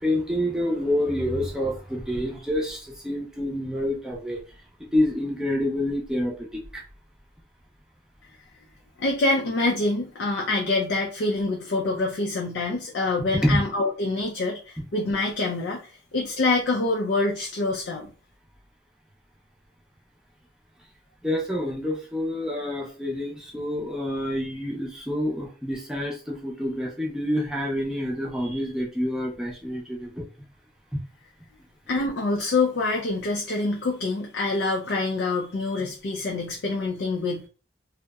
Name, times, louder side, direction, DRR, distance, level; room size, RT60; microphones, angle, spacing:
voice 1, 0.0-4.4 4.9-6.3 6.7-6.8 13.4-13.6 14.8-14.9 21.2-30.2 30.9-31.0, left 1 dB, 5° right, -2 dB, 0.5 m, -27 dB
voice 2, 9.0-18.1 31.9-37.5, left 2 dB, 75° left, -1 dB, 0.4 m, -26 dB
2.7 x 2.0 x 2.2 m, 0.36 s
head